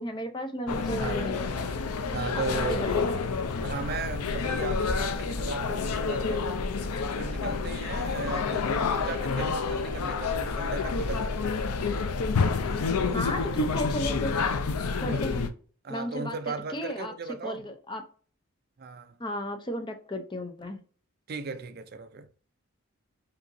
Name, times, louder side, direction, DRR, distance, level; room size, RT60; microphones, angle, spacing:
voice 1, 0.0-1.6 2.3-3.2 13.1-14.4 15.0-15.5 15.9-18.0 19.2-20.8, equal, 20° left, 0.5 m, -34 dB
sound 1, 0.7-15.5, left 4 dB, 85° left, 0.5 m, -29 dB
voice 2, 1.0-1.3 2.1-2.9 3.6-6.7 7.2-11.6 15.0-15.2 15.8-17.6 18.8-19.2 21.3-22.3, right 4 dB, 45° right, 0.4 m, -36 dB
5.3 x 2.8 x 2.6 m
head